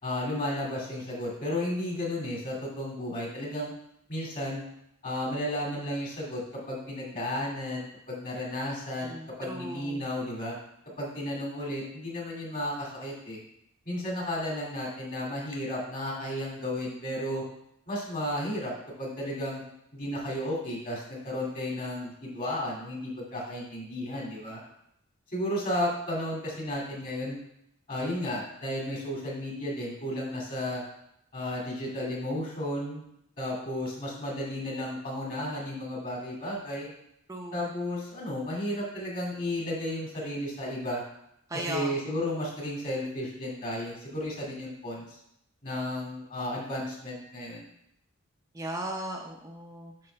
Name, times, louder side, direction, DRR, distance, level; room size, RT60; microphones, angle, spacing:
voice 1, 0.0-3.7 4.1-4.6 5.0-6.4 6.7-10.6 11.0-13.4 13.9-17.4 17.9-18.7 19.0-19.6 19.9-24.6 25.3-27.4 27.9-30.8 31.3-33.0 33.4-36.9 37.5-41.0 41.5-45.2 45.6-47.7, left 1 dB, 40° left, -3 dB, 2.3 m, -33 dB
voice 2, 9.0-10.0 37.3-37.6 41.5-41.9 48.5-49.9, right 1 dB, 15° right, 1 dB, 0.6 m, -37 dB
7.5 x 5.9 x 3.3 m, 0.77 s
head